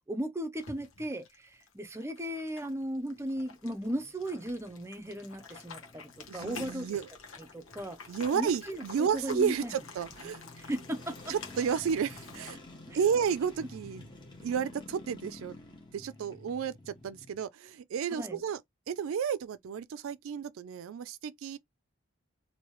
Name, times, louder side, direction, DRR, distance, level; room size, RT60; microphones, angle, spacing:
voice 1, 0.1-6.9 7.5-8.0 8.3-9.7 10.6-11.3 12.9-13.0 18.2-18.4, equal, 15° right, 0.5 m, -36 dB
sound 1, 0.6-12.6, left 4 dB, 80° left, 1.1 m, -49 dB
sound 2, 2.2-17.4, left 2 dB, 25° left, 0.9 m, -52 dB
voice 2, 6.3-7.1 8.1-10.4 11.3-12.6 12.9-14.1 14.4-15.5 15.9-18.6 18.9-21.6, right 7 dB, 85° right, 0.4 m, -32 dB
3.0 x 2.7 x 3.1 m
head